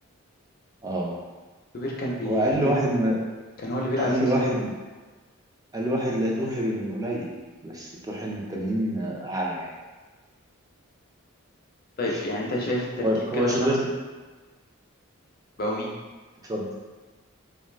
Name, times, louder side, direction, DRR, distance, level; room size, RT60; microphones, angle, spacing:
voice 1, 0.8-1.1 2.2-3.2 4.0-4.7 5.7-7.3 7.6-9.7 12.1-12.2 13.0-13.9 16.5-16.7, right 1 dB, 15° right, -2 dB, 0.4 m, -26 dB
voice 2, 1.7-2.8 3.6-4.5 12.0-13.0 13.4-13.7 15.6-15.9, left 1 dB, 45° left, -2 dB, 0.5 m, -28 dB
2.5 x 2.3 x 3.2 m, 1.3 s
head